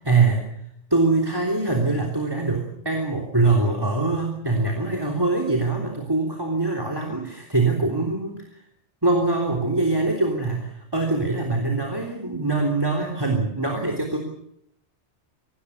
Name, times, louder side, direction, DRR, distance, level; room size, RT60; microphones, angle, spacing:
voice 1, 0.0-0.5 0.9-8.6 9.0-14.2, right 3 dB, 20° right, 3 dB, 3.5 m, -23 dB
24.5 x 18.5 x 8.5 m, 0.77 s
omnidirectional pair, 1.2 m